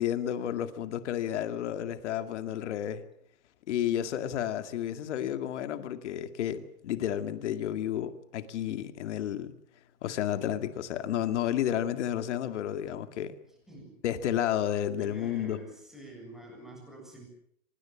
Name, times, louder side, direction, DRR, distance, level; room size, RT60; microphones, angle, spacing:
voice 1, 0.0-3.0 3.7-9.5 10.0-13.3 14.0-15.6, left 10 dB, 50° left, 2.2 m, -31 dB
voice 2, 13.7-14.0 15.0-17.2, right 1 dB, ahead, 7.5 m, -48 dB
25.0 x 21.5 x 7.5 m
hypercardioid pair, 165°, 46 cm